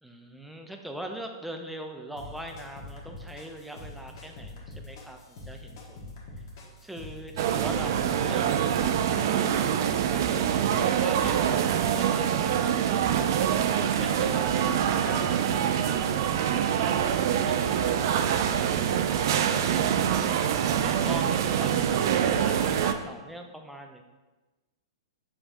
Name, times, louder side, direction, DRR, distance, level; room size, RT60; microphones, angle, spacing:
voice 1, 0.0-6.1 6.8-13.4 14.0-17.0 20.8-24.0, right 1 dB, ahead, 3 dB, 0.5 m, -42 dB
sound 1, 2.2-8.5, left 2 dB, 55° left, 1.1 m, -44 dB
sound 2, 7.4-22.9, right 9 dB, 55° right, 0.3 m, -25 dB
5.9 x 3.3 x 2.6 m, 1.2 s
hypercardioid pair, 110°, 2 cm